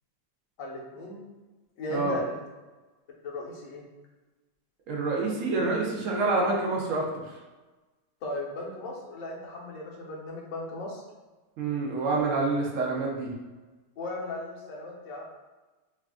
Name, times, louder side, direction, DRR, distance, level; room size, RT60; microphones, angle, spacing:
voice 1, 0.6-1.2 1.8-2.4 3.2-3.8 8.2-11.0 14.0-15.2, left 2 dB, 60° left, -1 dB, 0.9 m, -37 dB
voice 2, 4.9-7.1 11.6-13.3, right 3 dB, 75° right, -1 dB, 0.7 m, -27 dB
3.2 x 2.4 x 3.5 m, 1.2 s
omnidirectional pair, 2.0 m